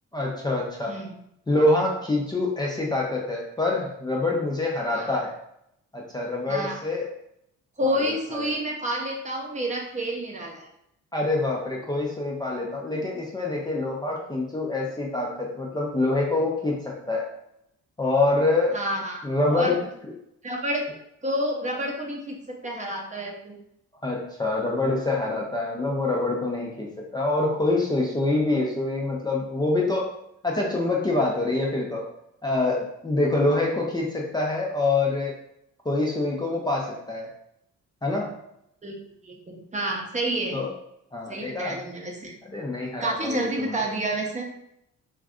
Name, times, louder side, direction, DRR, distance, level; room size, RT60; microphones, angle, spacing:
voice 1, 0.1-1.0 1.5-5.4 5.9-7.1 7.8-8.0 8.3-8.5 11.1-17.3 18.0-18.8 19.2-19.8 24.0-30.1 30.4-32.1 32.4-35.3 35.9-37.3 38.0-38.4 40.5-40.7 41.1-41.8 42.4-43.9, left 2 dB, 15° left, -3 dB, 0.5 m, -25 dB
voice 2, 7.8-10.7 18.7-19.2 19.5-19.8 20.4-20.9 21.2-23.6 38.8-39.0 39.2-40.6 41.3-42.3 43.0-44.5, right 1 dB, 25° right, 0 dB, 0.7 m, -29 dB
2.5 x 2.3 x 3.5 m, 0.77 s
cardioid pair, 90°, 30 cm